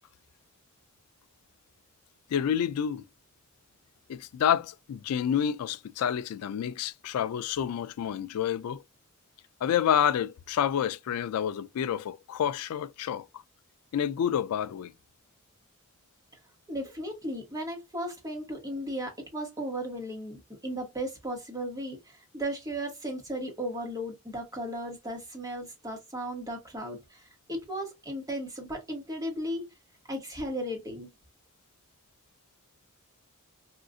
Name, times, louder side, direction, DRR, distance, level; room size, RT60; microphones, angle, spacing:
voice 1, 2.3-3.1 4.1-8.8 9.6-13.3 13.9-14.9, left 9 dB, 85° left, 0.3 m, -28 dB
voice 2, 16.7-29.6 30.1-31.1, equal, 15° right, 1.2 m, -36 dB
3.7 x 2.4 x 2.5 m
head